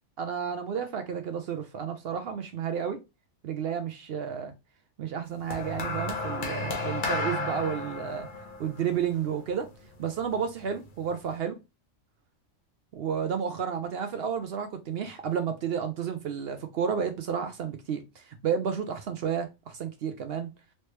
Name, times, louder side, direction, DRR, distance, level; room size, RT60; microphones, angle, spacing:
voice 1, 0.2-3.0 3.4-4.5 5.0-8.3 8.6-9.7 10.0-11.6 12.9-20.5, right 7 dB, 65° right, 0.6 m, -31 dB
sound 1, 5.5-9.9 10.9-11.1, left 2 dB, 45° left, 0.9 m, -33 dB
3.2 x 2.8 x 3.1 m
omnidirectional pair, 1.3 m